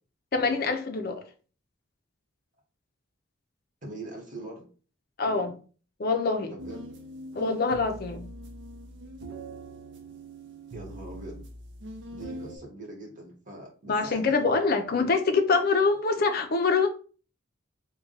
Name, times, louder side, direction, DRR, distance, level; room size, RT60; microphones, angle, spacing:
voice 1, 0.3-1.2 5.2-5.5 6.0-6.5 7.3-8.3 13.9-16.9, left 4 dB, 50° left, 0.5 m, -25 dB
voice 2, 3.8-4.7 6.5-6.8 10.7-11.4 12.1-14.5, right 2 dB, 40° right, 1.3 m, -42 dB
sound 1, 6.6-12.6, right 1 dB, 60° right, 0.5 m, -42 dB
3.5 x 2.2 x 3.8 m
head